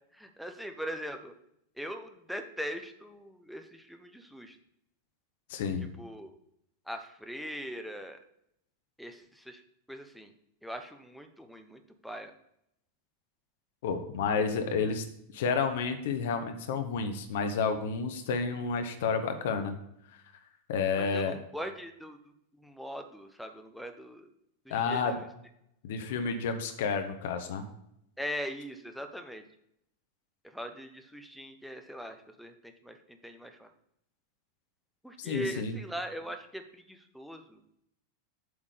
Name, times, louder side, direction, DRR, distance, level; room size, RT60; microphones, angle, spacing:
voice 1, 0.1-1.3 1.8-4.6 6.0-6.3 6.9-8.2 9.0-9.6 9.9-10.3 10.6-12.3 21.0-24.3 24.6-25.3 28.2-29.4 30.4-33.7 35.0-37.6, equal, ahead, 5 dB, 0.9 m, -41 dB
voice 2, 5.5-5.9 13.8-15.0 15.3-19.8 20.7-21.4 24.7-25.2 25.8-27.6 35.2-35.8, left 5 dB, 55° left, 7 dB, 1.0 m, -30 dB
7.9 x 3.7 x 6.6 m, 0.76 s
figure-of-eight pair, 90°, 0 cm